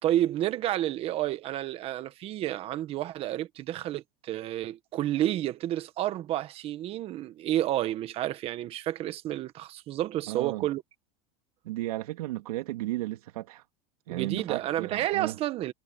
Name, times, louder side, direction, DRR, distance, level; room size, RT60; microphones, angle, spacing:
voice 1, 0.0-10.8 14.1-15.7, right 13 dB, 30° right, 1.4 m, -30 dB
voice 2, 10.3-10.7 11.6-13.6 14.1-15.4, right 17 dB, 80° right, 3.0 m, -34 dB
supercardioid pair, 160°, 19 cm